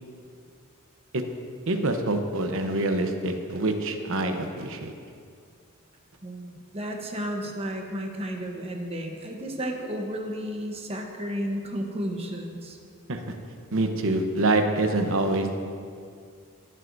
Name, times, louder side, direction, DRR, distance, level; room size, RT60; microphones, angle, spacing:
voice 1, 1.7-4.9 13.1-13.2 13.7-15.6, right 2 dB, 65° right, 5 dB, 0.9 m, -25 dB
voice 2, 6.2-12.8, equal, 30° right, 2 dB, 1.0 m, -33 dB
18.5 x 7.7 x 2.7 m, 2.3 s
head